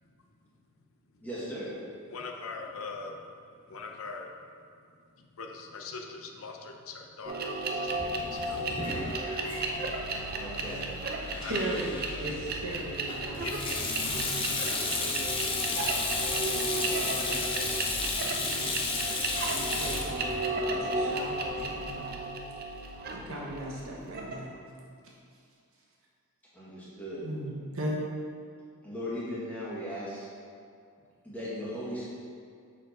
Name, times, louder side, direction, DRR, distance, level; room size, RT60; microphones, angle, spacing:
voice 1, 1.2-1.7 10.4-10.9 26.5-27.2 28.8-30.3 31.2-32.2, equal, 5° left, -9 dB, 1.7 m, -37 dB
voice 2, 2.1-3.3 3.7-4.4 5.2-8.6 11.4-11.8 12.1-12.3 13.4-13.5, left 4 dB, 70° left, 3 dB, 0.6 m, -42 dB
sound 1, 7.3-24.5, right 2 dB, 45° right, 0.6 m, -34 dB
Sink (filling or washing), 7.9-21.6, left 3 dB, 25° left, 0.6 m, -34 dB
voice 3, 11.4-16.2 16.5-19.0 19.5-22.2 23.1-24.6 27.2-28.0, right 1 dB, 65° right, -3 dB, 1.3 m, -39 dB
6.9 x 5.0 x 4.2 m, 2.3 s
head